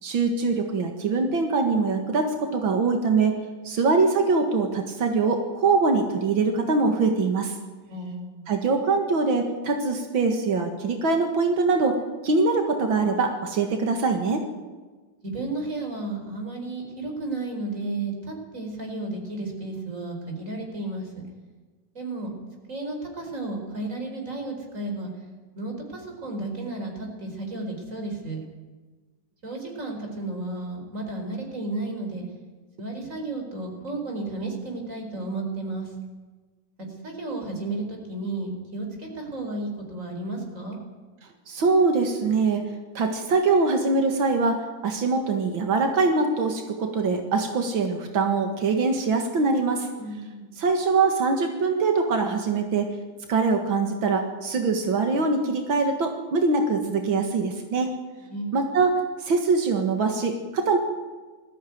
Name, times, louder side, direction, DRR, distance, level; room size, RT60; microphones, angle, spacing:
voice 1, 0.0-3.4 3.6-7.5 8.5-12.0 12.2-14.4 41.5-42.7 42.9-49.9 50.6-52.9 53.3-57.9 58.5-60.8, right 4 dB, 90° right, 4 dB, 2.6 m, -23 dB
voice 2, 7.9-8.5 15.2-21.1 21.9-22.3 22.7-25.1 25.5-28.4 29.4-32.2 32.8-35.9 36.8-40.8 50.0-50.5 58.2-58.5, right 2 dB, 40° right, 2 dB, 5.0 m, -33 dB
20.0 x 15.0 x 9.4 m, 1.3 s
omnidirectional pair, 2.1 m